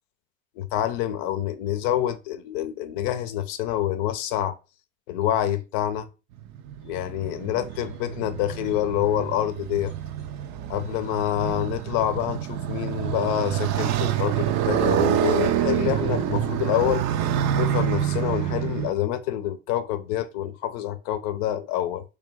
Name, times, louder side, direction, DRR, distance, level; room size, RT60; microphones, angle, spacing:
voice 1, 0.6-4.5 5.1-6.1 6.8-9.9 10.7-17.0 17.5-22.0, left 12 dB, 65° left, 0.6 m, -27 dB
Motorcycle, 6.4-18.9, right 11 dB, 45° right, 0.5 m, -27 dB
3.4 x 2.9 x 3.5 m
hypercardioid pair, 90°, 38 cm